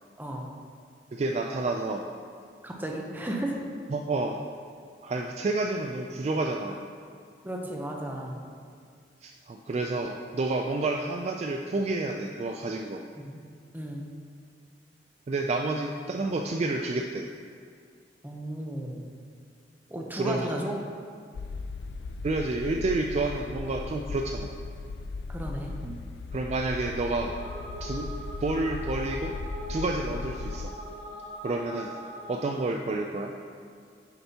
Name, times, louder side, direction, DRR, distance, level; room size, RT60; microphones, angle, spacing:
voice 1, 1.1-2.1 3.9-4.4 5.0-6.8 9.2-13.0 15.3-17.3 20.2-20.6 22.2-24.5 25.8-26.0 26.3-27.4 27.8-28.1 28.4-29.3 29.7-30.7 31.4-32.0 32.3-33.3, right 2 dB, 35° right, 2 dB, 0.3 m, -29 dB
voice 2, 2.6-3.6 7.4-8.4 13.2-13.4 13.7-14.0 18.2-19.0 19.9-20.8 25.3-25.7, right 1 dB, 10° right, 0 dB, 0.7 m, -34 dB
sound 1, 21.3-30.7, left 3 dB, 75° left, 0.3 m, -37 dB
sound 2, 27.0-32.7, equal, 60° right, 1.4 m, -42 dB
8.6 x 6.7 x 2.8 m, 2.2 s
head